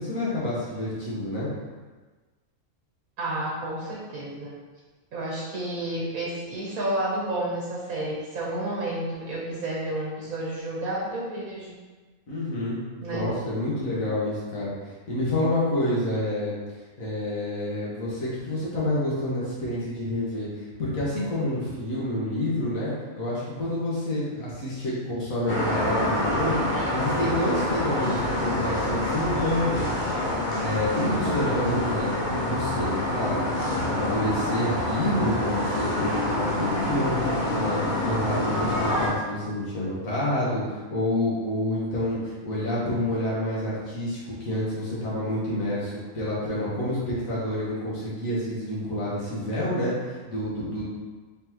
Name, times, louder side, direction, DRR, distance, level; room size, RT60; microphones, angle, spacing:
voice 1, 0.0-1.5 12.3-14.7 15.1-16.5 17.0-20.5 20.8-26.6 26.9-30.1 30.6-32.1 32.4-50.9, left 1 dB, 70° left, -8 dB, 1.5 m, -28 dB
voice 2, 3.2-4.6 5.1-11.8 13.0-13.3, right 1 dB, 80° right, -5 dB, 1.4 m, -31 dB
sound 1, 25.5-39.1, left 1 dB, 45° left, 0.7 m, -27 dB
3.9 x 3.4 x 2.9 m, 1.3 s
omnidirectional pair, 1.5 m